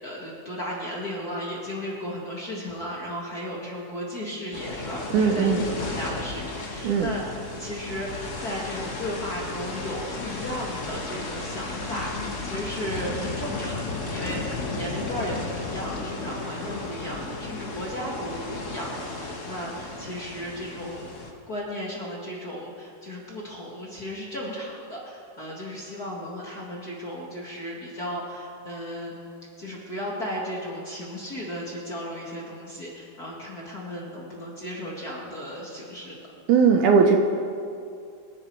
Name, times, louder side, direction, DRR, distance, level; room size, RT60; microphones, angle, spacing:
voice 1, 0.0-21.1 21.5-29.1 29.6-36.3, equal, 35° left, -4 dB, 1.9 m, -35 dB
sound 1, 4.5-21.3, left 3 dB, 80° left, 0.6 m, -34 dB
voice 2, 5.1-5.6 6.8-7.1 36.5-37.2, right 6 dB, 70° right, 3 dB, 2.1 m, -18 dB
25.5 x 10.5 x 4.7 m, 2.4 s
omnidirectional pair, 4.2 m